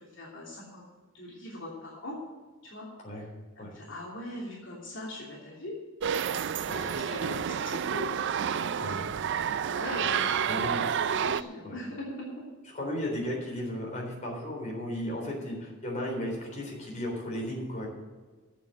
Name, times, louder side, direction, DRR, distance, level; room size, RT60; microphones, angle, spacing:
voice 1, 0.2-0.8 1.1-2.2 2.6-2.8 3.6-5.7 7.0-8.0 8.6-8.7 9.5-10.8 11.1-12.3, left 1 dB, 60° left, -4 dB, 3.0 m, -40 dB
sound 1, 6.0-11.4, right 7 dB, 55° right, 0.4 m, -29 dB
voice 2, 6.7-7.3 8.8-9.0 10.0-10.1 10.4-10.8 11.6-11.7 12.6-17.9, left 1 dB, 35° left, -1 dB, 3.8 m, -35 dB
9.9 x 7.3 x 8.9 m, 1.4 s
head